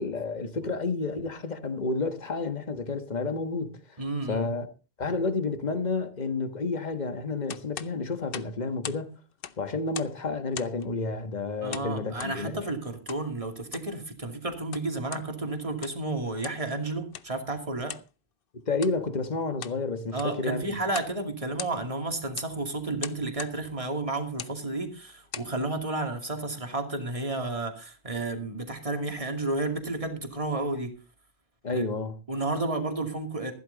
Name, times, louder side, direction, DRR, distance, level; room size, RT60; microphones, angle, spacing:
voice 1, 0.0-4.0 4.3-4.7 5.0-9.1 9.6-12.6 18.7-20.8 31.6-32.2, left 3 dB, 40° left, 1.5 m, -30 dB
voice 2, 4.0-4.4 11.6-17.9 20.1-30.9 31.7-31.8 32.3-33.5, right 2 dB, 30° right, 2.6 m, -32 dB
sound 1, 7.5-9.1 9.3-10.2 10.5-10.9 11.7-12.4 13.1-13.3 13.6-13.9 14.5-15.3 15.7-16.1 16.4-16.7 17.1-17.3 17.9-18.1 18.7-19.0 19.4-19.8 20.1-20.4 20.9-21.2 21.4-22.0 22.4-22.5 23.0-23.6 24.3-24.6 25.1-25.5, left 8 dB, 60° left, 1.0 m, -40 dB
15.0 x 12.0 x 4.0 m
omnidirectional pair, 1.1 m